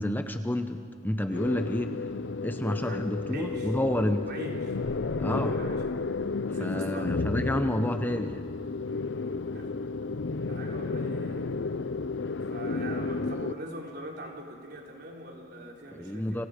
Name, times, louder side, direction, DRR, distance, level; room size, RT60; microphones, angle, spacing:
voice 1, 0.0-2.0 2.4-4.3 5.2-5.6 6.5-8.4 15.9-16.5, left 1 dB, 10° left, 7 dB, 0.8 m, -29 dB
sound 1, 1.3-13.5, left 3 dB, 65° left, 0.6 m, -32 dB
voice 2, 3.3-3.7 4.2-4.8 5.2-6.0 6.5-7.2 9.5-9.7 10.5-11.6 12.5-16.4, right 1 dB, 55° right, 0 dB, 4.0 m, -42 dB
30.0 x 26.5 x 5.1 m, 2.2 s
head